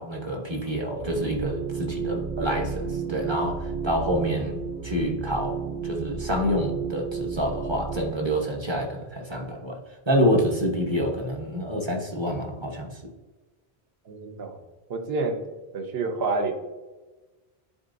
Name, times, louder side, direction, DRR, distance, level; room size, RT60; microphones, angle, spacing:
voice 1, 0.0-9.8 10.1-12.9, equal, 25° right, 0 dB, 1.0 m, -27 dB
sound 1, 0.9-8.1, right 5 dB, 55° right, 0.7 m, -32 dB
voice 2, 14.1-14.6 14.9-15.4 15.7-16.5, right 3 dB, 70° right, 4 dB, 1.1 m, -28 dB
10.0 x 3.9 x 2.6 m, 1.2 s
omnidirectional pair, 1.1 m